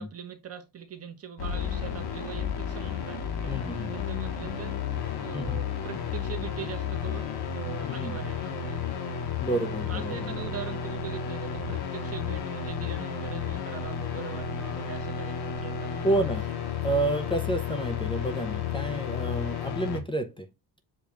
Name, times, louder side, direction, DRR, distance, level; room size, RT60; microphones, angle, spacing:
voice 1, 0.0-4.8 5.2-9.0 9.9-16.4, right 8 dB, 30° right, 0.9 m, -42 dB
sound 1, 1.4-20.0, left 7 dB, 55° left, 1.0 m, -32 dB
voice 2, 3.5-3.9 5.3-5.6 7.8-8.2 9.4-10.3 16.0-16.4 16.8-20.5, right 2 dB, 10° left, 0.4 m, -29 dB
6.9 x 2.3 x 3.0 m
cardioid pair, 120°, 45 cm